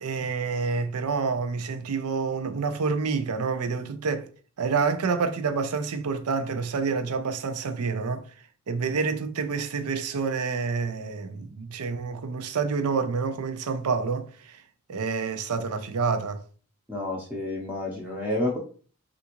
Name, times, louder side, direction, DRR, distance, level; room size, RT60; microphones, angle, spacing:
voice 1, 0.0-4.3 4.6-8.3 8.7-14.6 14.9-16.4, right 5 dB, 85° right, 0.5 m, -28 dB
voice 2, 16.9-18.6, left 1 dB, 10° right, 0.6 m, -29 dB
3.5 x 2.5 x 2.9 m
head